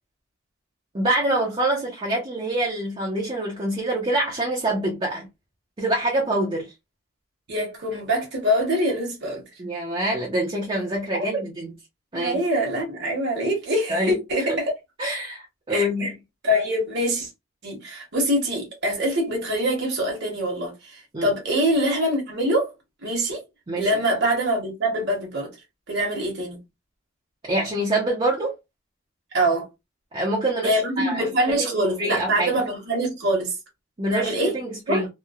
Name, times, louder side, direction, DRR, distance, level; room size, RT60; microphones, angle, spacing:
voice 1, 0.9-5.3 5.8-6.7 9.6-11.7 12.1-12.4 13.9-14.2 15.0-16.1 21.1-21.3 23.7-23.9 27.5-28.6 30.1-31.2 31.6-32.5 34.0-35.1, right 1 dB, 25° right, 0.6 m, -25 dB
voice 2, 7.5-9.4 11.1-11.4 12.1-14.7 15.7-16.1 16.4-17.3 17.6-22.7 23.0-23.4 23.8-25.5 25.9-26.6 29.3-29.7 30.6-33.6 34.1-34.6 34.9-35.1, equal, 55° right, 1.1 m, -24 dB
2.9 x 2.2 x 2.3 m
head